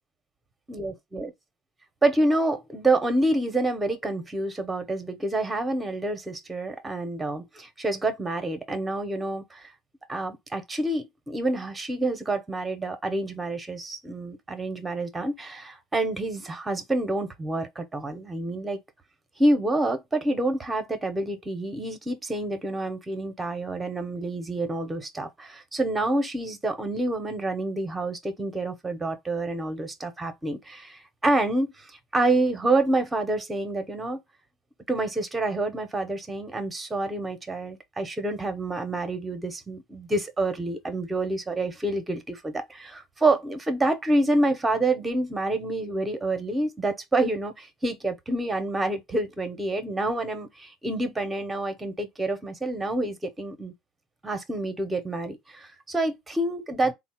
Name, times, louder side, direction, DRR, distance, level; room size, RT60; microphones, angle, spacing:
voice 1, 0.7-1.3 2.0-9.7 10.1-18.8 19.4-34.2 34.9-53.7 54.2-56.9, right 2 dB, 10° right, 0.7 m, -27 dB
3.8 x 2.1 x 4.3 m
cardioid pair, 150°, 0 cm